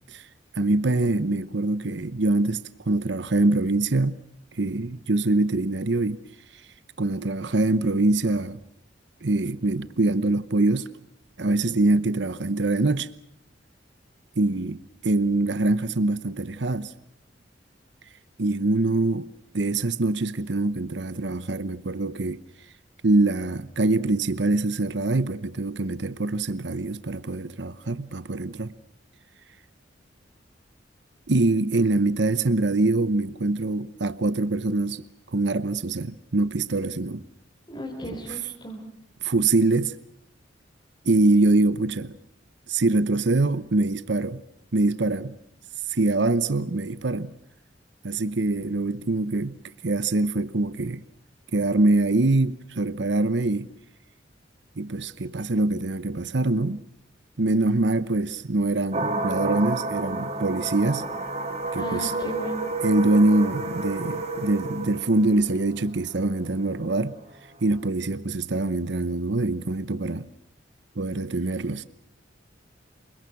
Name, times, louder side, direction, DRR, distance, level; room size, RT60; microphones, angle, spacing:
voice 1, 0.6-2.6 2.9-4.2 4.5-6.2 7.0-8.6 9.2-10.9 11.4-13.1 14.4-16.9 18.4-22.4 23.0-28.7 31.3-35.0 35.3-37.2 39.2-39.9 41.0-42.2 42.7-44.4 44.7-45.4 45.9-47.3 48.0-49.6 49.8-51.0 51.5-53.7 54.8-56.8 57.4-61.1 61.7-62.1 62.8-67.2 67.6-70.3 71.0-71.8, right 2 dB, 65° right, 0.9 m, -24 dB
voice 2, 37.7-38.8 61.8-62.6, equal, 25° left, 4.6 m, -35 dB
sound 1, 58.9-67.8, right 2 dB, 35° right, 3.0 m, -31 dB
28.5 x 24.5 x 6.1 m
head